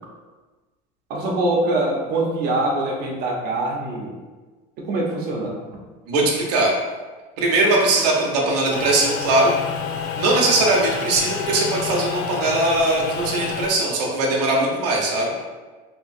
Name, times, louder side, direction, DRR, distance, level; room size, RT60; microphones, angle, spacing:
voice 1, 1.1-4.2 4.8-5.6, right 2 dB, 50° right, -1 dB, 0.7 m, -23 dB
voice 2, 6.1-6.7 7.4-9.6 10.1-15.4, right 2 dB, 90° right, -2 dB, 0.7 m, -20 dB
sound 1, 8.7-13.7, left 7 dB, 70° left, 0.4 m, -29 dB
2.9 x 2.6 x 2.5 m, 1.3 s
supercardioid pair, 115°, 20 cm